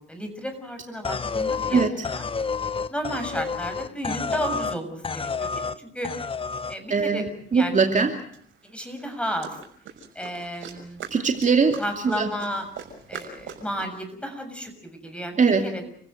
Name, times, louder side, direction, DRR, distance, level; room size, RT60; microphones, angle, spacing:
voice 1, 0.0-2.2 2.9-6.1 6.7-7.8 8.6-9.6 10.1-11.0 11.8-12.6 13.1-15.9, equal, 5° left, 7 dB, 6.9 m, -33 dB
sound 1, 1.0-4.8 5.0-5.8 6.0-6.8, left 5 dB, 25° left, 0.9 m, -29 dB
voice 2, 6.9-7.3 7.5-8.1 11.1-11.7 12.1-12.3 15.4-15.6, right 5 dB, 40° right, 4 dB, 2.6 m, -20 dB
sound 2, 7.6-7.7 8.3-13.9, right 7 dB, 75° right, 5.9 m, -42 dB
29.5 x 16.0 x 7.9 m, 0.62 s
cardioid pair, 90°, 20 cm